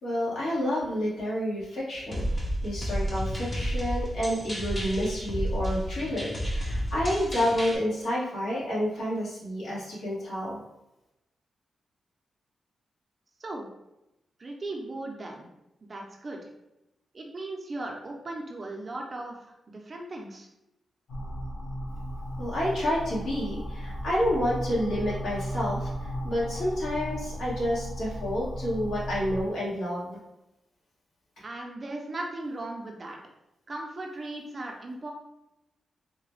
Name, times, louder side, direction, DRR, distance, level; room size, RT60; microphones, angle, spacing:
voice 1, 0.0-10.6 22.4-25.9 26.2-30.2, equal, 75° left, -7 dB, 1.4 m, -29 dB
sound 1, 2.1-7.8, equal, 20° left, 0.6 m, -31 dB
voice 2, 14.4-15.5 15.8-16.5 17.1-20.5 31.4-33.2 33.7-35.1, right 2 dB, 30° right, 0 dB, 0.5 m, -37 dB
sound 2, 21.1-29.4, equal, 50° left, 0.9 m, -35 dB
3.8 x 2.2 x 3.1 m, 0.91 s
wide cardioid pair, 160°, 0 cm